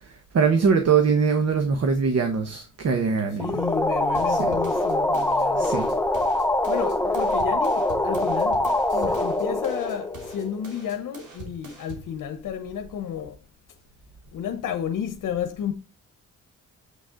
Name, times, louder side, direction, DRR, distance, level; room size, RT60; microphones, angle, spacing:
voice 1, 0.3-3.6 4.3-4.6 5.6-5.9, right 5 dB, 55° right, 1.2 m, -22 dB
voice 2, 3.3-5.7 6.7-8.6 8.9-13.4 14.3-15.7, left 8 dB, 80° left, 0.9 m, -31 dB
sound 1, 3.4-10.8, left 1 dB, 5° left, 0.5 m, -24 dB
sound 2, 4.1-12.1, right 4 dB, 70° right, 3.1 m, -43 dB
7.5 x 6.5 x 3.7 m
cardioid pair, 115°, 31 cm